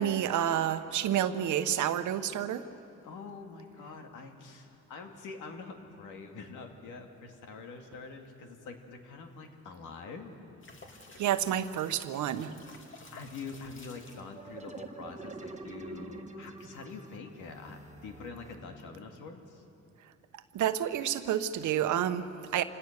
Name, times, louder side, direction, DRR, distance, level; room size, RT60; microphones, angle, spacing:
voice 1, 0.0-2.7 11.2-12.6 20.5-22.6, right 10 dB, 75° right, 11 dB, 1.0 m, -29 dB
voice 2, 3.0-10.3 13.1-19.6, left 4 dB, 85° left, 4 dB, 2.2 m, -45 dB
sound 1, 10.6-14.3 20.3-20.9, left 3 dB, 40° left, 2.4 m, -53 dB
sound 2, 13.9-19.3, right 3 dB, 25° right, 1.5 m, -46 dB
27.0 x 17.5 x 6.7 m, 2.7 s
cardioid pair, 90°, 30 cm